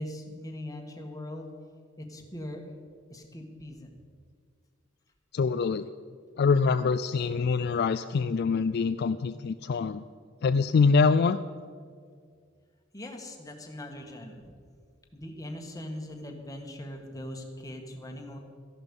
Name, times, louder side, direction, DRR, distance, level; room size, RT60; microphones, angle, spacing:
voice 1, 0.0-1.5 2.0-2.8 3.1-3.9 12.9-14.5 15.1-18.4, left 1 dB, 20° left, 3 dB, 1.6 m, -40 dB
voice 2, 5.3-5.9 6.4-10.0 10.4-11.4, left 4 dB, 55° left, 11 dB, 0.3 m, -24 dB
14.0 x 11.5 x 5.4 m, 2.1 s
head